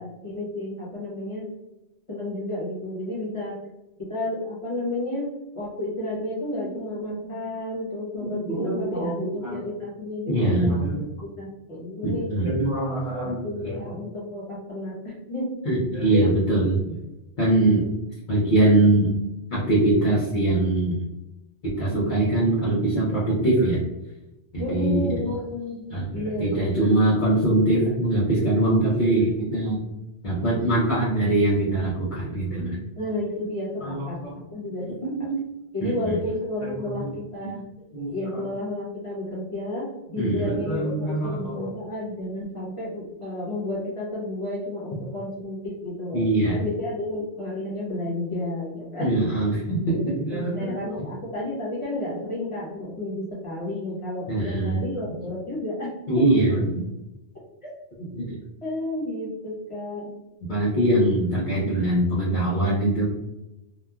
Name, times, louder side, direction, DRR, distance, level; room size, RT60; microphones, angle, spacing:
voice 1, 0.0-1.5 2.1-3.6 4.0-10.8 11.2-12.3 13.2-15.6 16.1-16.2 17.6-17.8 21.9-22.2 24.6-25.8 26.1-26.9 32.9-34.2 34.5-35.0 35.7-37.7 38.1-46.3 46.5-49.4 50.0-50.1 50.3-55.9 56.1-56.4 58.6-60.1, left 1 dB, 30° left, -6 dB, 1.1 m, -31 dB
voice 2, 8.2-9.6 10.3-11.0 12.0-13.8 15.7-17.0 17.4-17.8 18.3-19.1 19.5-21.0 21.6-23.8 24.5-25.0 25.9-29.8 30.2-32.8 33.8-34.4 35.0-35.4 35.8-36.2 36.6-37.1 37.4-37.5 37.9-38.4 40.2-41.7 46.1-46.6 49.0-51.1 54.3-54.8 56.1-56.6 58.1-58.4 60.5-63.0, right 2 dB, 50° left, -7 dB, 0.8 m, -23 dB
3.0 x 2.3 x 2.3 m, 0.98 s
omnidirectional pair, 1.1 m